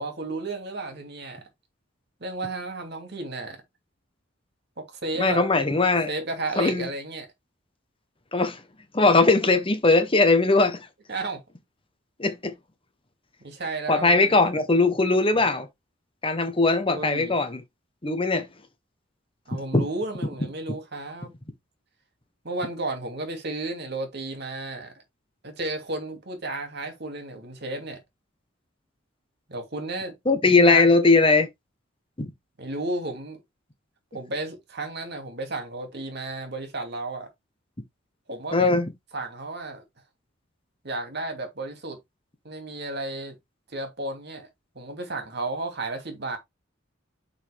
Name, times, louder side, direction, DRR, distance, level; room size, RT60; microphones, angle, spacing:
voice 1, 0.0-1.4 2.2-3.6 4.8-5.5 6.1-7.3 11.1-11.4 13.4-14.4 16.9-17.4 19.5-21.3 22.4-24.9 25.4-28.0 29.5-30.2 30.6-30.9 32.6-33.4 34.1-37.3 38.3-38.7 39.1-39.8 40.8-42.0 42.4-43.4 43.7-44.5 44.7-46.4, right 2 dB, 55° right, 2.8 m, -33 dB
voice 2, 5.2-6.1 6.6-6.9 8.3-8.6 8.9-10.8 12.2-12.5 13.9-15.7 16.2-17.6 18.0-18.5 19.7-19.8 30.3-31.5 32.2-32.3 38.5-38.9, left 3 dB, 25° left, 1.3 m, -20 dB
6.6 x 5.5 x 3.6 m
head